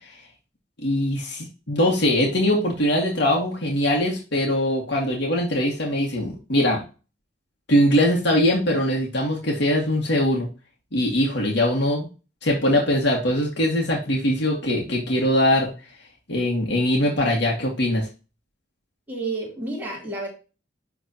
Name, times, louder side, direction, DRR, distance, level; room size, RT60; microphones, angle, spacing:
voice 1, 0.8-6.8 7.7-10.5 10.9-12.1 12.4-15.7 16.3-18.1, left 1 dB, 65° left, -2 dB, 1.9 m, -22 dB
voice 2, 19.1-20.3, right 2 dB, 10° right, -3 dB, 2.9 m, -30 dB
10.5 x 3.9 x 2.9 m, 0.31 s
head